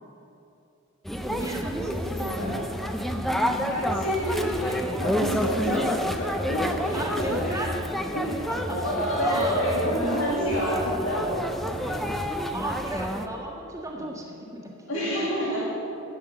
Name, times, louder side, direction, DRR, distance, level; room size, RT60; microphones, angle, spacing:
sound 1, 1.0-13.3, equal, ahead, 0.6 m, -29 dB
voice 1, 1.2-2.9 5.0-5.5 5.7-5.9 6.9-7.7 8.5-8.8 9.2-9.7 12.5-15.1 15.4-15.6, right 1 dB, 15° right, -2 dB, 1.7 m, -35 dB
voice 2, 1.8-2.5 3.5-7.7 8.1-8.4 8.7-12.1 13.9-14.2 14.9-15.6, equal, 80° left, -5 dB, 2.2 m, -29 dB
12.5 x 9.2 x 6.7 m, 2.8 s
head